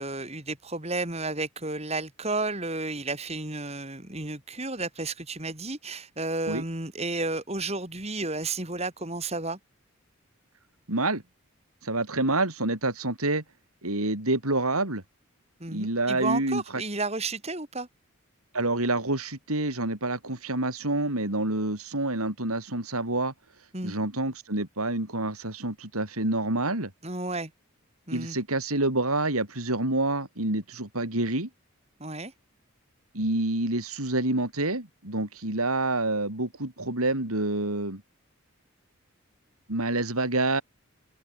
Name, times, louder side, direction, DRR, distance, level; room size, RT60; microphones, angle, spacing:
voice 1, 0.0-9.6 15.6-17.9 23.7-23.9 27.0-27.5 28.1-28.4 32.0-32.3, right 2 dB, 30° right, 4.0 m, -32 dB
voice 2, 10.9-11.2 11.8-13.4 13.8-15.0 15.7-16.8 18.5-23.3 23.8-26.9 28.1-31.5 33.1-38.0 39.7-40.6, right 2 dB, 85° right, 5.2 m, -27 dB
open air
head